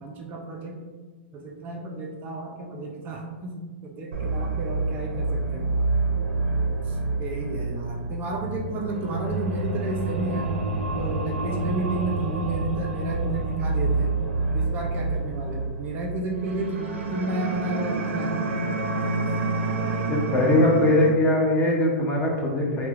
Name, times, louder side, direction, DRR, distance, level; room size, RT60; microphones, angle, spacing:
voice 1, 0.0-0.8 1.3-5.7 6.9-10.6 11.0-14.2 14.5-18.9, right 2 dB, 30° right, 0 dB, 0.4 m, -32 dB
sound 1, 4.1-21.1, right 3 dB, 85° right, 0.5 m, -28 dB
voice 2, 20.1-22.9, left 1 dB, 25° left, -1 dB, 0.6 m, -21 dB
4.3 x 2.1 x 2.4 m, 1.4 s
hypercardioid pair, 140°, 6 cm